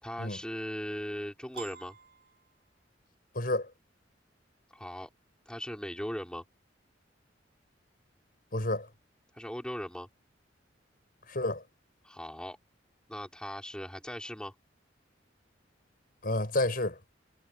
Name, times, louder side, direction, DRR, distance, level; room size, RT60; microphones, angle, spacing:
voice 1, 0.0-2.0 4.7-5.1 5.5-6.4 9.3-10.1 12.0-12.6 13.1-14.5, equal, 5° left, 4.4 m, -38 dB
Piano, 1.5-3.1, right 6 dB, 55° right, 7.5 m, -49 dB
voice 2, 3.3-3.7 8.5-8.9 11.3-11.6 16.2-17.0, left 2 dB, 50° left, 5.6 m, -30 dB
head